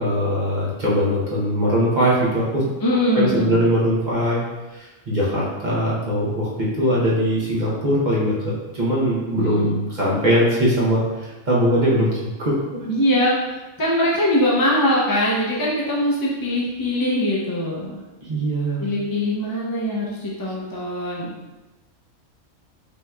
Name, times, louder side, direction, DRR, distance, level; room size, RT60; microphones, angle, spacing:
voice 1, 0.0-2.7 3.1-4.4 4.7-12.1 12.4-12.8 18.2-18.8, equal, 40° right, -6 dB, 0.9 m, -21 dB
voice 2, 2.8-3.6 9.4-9.7 12.8-18.0 18.8-21.4, left 1 dB, 35° left, -5 dB, 0.3 m, -22 dB
5.3 x 2.9 x 2.3 m, 1.1 s
omnidirectional pair, 1.4 m